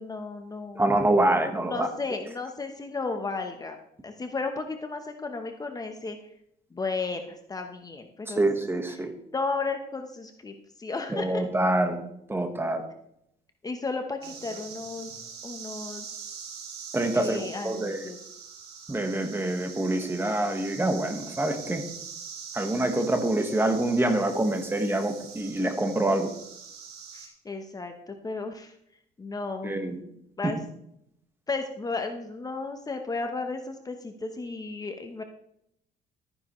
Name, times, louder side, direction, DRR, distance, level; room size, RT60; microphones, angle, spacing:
voice 1, 0.0-0.9 1.6-3.8 4.0-6.3 6.7-8.4 9.0-9.1 9.3-11.4 13.6-15.1 15.4-16.2 17.1-18.3 27.1-28.7 29.2-29.8 30.4-30.6 31.5-35.2, left 3 dB, 20° left, 6 dB, 1.0 m, -34 dB
voice 2, 0.7-1.9 8.4-9.1 11.1-12.0 12.3-12.8 16.9-18.0 18.9-21.8 22.5-26.3 29.6-30.0 30.4-30.5, right 1 dB, 15° right, 6 dB, 1.4 m, -26 dB
sound 1, 14.2-27.3, right 6 dB, 70° right, 2.6 m, -43 dB
13.0 x 9.8 x 3.2 m, 0.76 s
cardioid pair, 110°, 17 cm